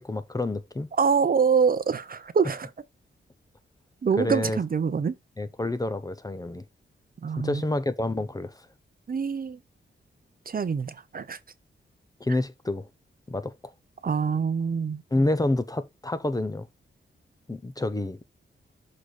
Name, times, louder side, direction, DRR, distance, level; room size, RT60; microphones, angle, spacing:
voice 1, 0.0-0.9 4.2-4.6 5.4-6.6 7.4-8.7 12.2-12.9 13.3-13.7 15.1-16.7 17.5-18.2, left 2 dB, 15° left, 0.7 m, -28 dB
voice 2, 1.0-2.7 4.0-5.1 7.2-7.6 9.1-9.6 10.5-11.4 14.0-15.0, right 6 dB, 45° right, 0.7 m, -25 dB
6.5 x 3.9 x 4.9 m
wide cardioid pair, 110°, 21 cm